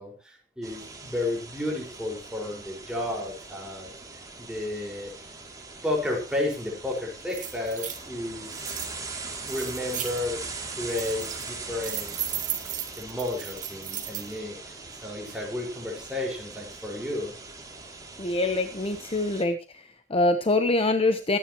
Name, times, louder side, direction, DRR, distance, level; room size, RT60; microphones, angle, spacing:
voice 1, 0.0-3.9 4.4-5.1 5.8-8.7 9.5-12.2 13.0-14.6 15.0-17.3, left 1 dB, 5° right, -1 dB, 5.3 m, -32 dB
sound 1, 0.6-19.4, right 3 dB, 20° right, 2.9 m, -41 dB
sound 2, 6.9-7.0 7.3-8.0 8.5-8.9 9.5-10.2 10.7-11.5 11.8-14.3, right 10 dB, 45° right, 2.4 m, -35 dB
voice 2, 18.2-21.4, left 2 dB, 30° left, 8 dB, 1.0 m, -25 dB
23.0 x 10.0 x 3.1 m, 0.30 s
head